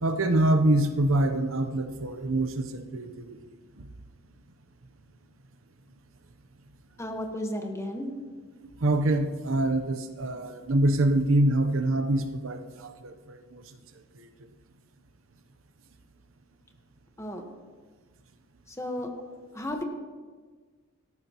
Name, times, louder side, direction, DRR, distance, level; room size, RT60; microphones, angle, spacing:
voice 1, 0.0-3.4 3.8-3.9 8.8-13.8 14.2-14.3, right 1 dB, 75° right, 8 dB, 0.8 m, -25 dB
voice 2, 7.0-8.1 17.2-17.5 18.7-19.1 19.5-19.8, left 1 dB, 15° left, 3 dB, 1.3 m, -33 dB
17.0 x 13.0 x 3.0 m, 1.5 s
head